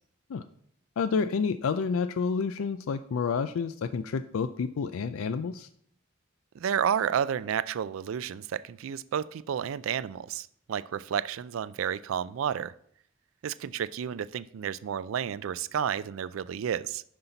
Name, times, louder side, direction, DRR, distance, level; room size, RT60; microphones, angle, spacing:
voice 1, 1.0-5.7, left 5 dB, 85° left, 11 dB, 0.4 m, -29 dB
voice 2, 6.5-12.7 13.4-17.0, right 8 dB, 75° right, 16 dB, 0.3 m, -31 dB
9.6 x 5.8 x 4.0 m, 0.65 s
head